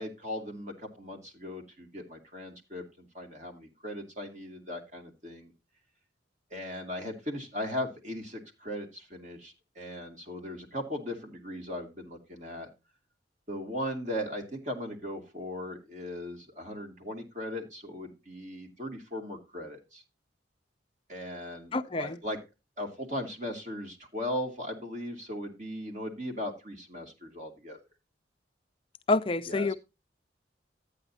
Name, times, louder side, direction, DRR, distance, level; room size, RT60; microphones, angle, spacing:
voice 1, 0.0-5.5 6.5-12.7 13.5-20.0 21.1-22.4 22.8-27.8 29.5-29.7, left 1 dB, 40° right, 2.6 m, -38 dB
voice 2, 21.7-22.2 29.1-29.7, left 3 dB, 30° left, 0.5 m, -27 dB
13.0 x 9.0 x 2.7 m
head